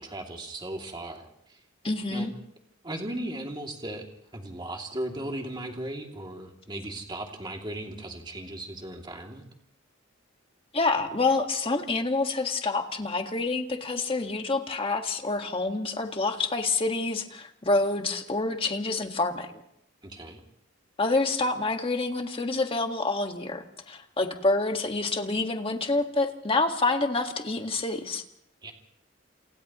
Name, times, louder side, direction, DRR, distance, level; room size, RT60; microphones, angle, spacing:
voice 1, 0.0-1.6 2.1-2.3 2.8-4.1 4.3-9.4 20.0-20.4 28.6-28.7, right 1 dB, 25° right, 1 dB, 2.7 m, -37 dB
voice 2, 1.8-2.3 10.7-19.6 21.0-28.2, left 3 dB, 30° left, 4 dB, 1.7 m, -27 dB
29.5 x 28.5 x 3.1 m, 0.75 s
head